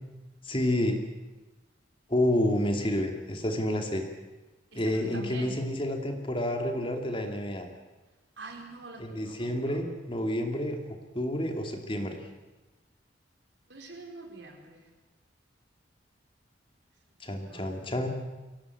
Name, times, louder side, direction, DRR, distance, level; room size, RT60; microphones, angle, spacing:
voice 1, 0.5-1.0 2.1-4.0 4.7-7.7 9.0-12.2 17.2-18.1, left 1 dB, 30° left, 4 dB, 2.6 m, -29 dB
voice 2, 4.7-5.6 8.4-9.8 13.7-14.9 17.4-17.7, right 3 dB, 65° right, 2 dB, 4.9 m, -45 dB
24.5 x 17.0 x 8.5 m, 1.1 s
head